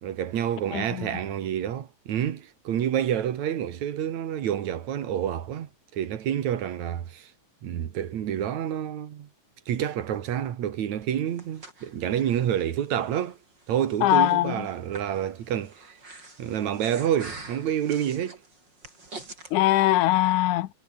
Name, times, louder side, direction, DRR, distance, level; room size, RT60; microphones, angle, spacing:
voice 1, 0.0-7.3 7.6-9.3 9.7-13.4 13.7-16.0 16.4-18.4, right 10 dB, 70° right, 2.9 m, -28 dB
voice 2, 0.7-1.1 14.0-14.7 19.5-20.7, left 15 dB, 85° left, 2.4 m, -22 dB
Breathing, 11.0-19.5, right 2 dB, 35° right, 6.7 m, -46 dB
omnidirectional pair, 3.4 m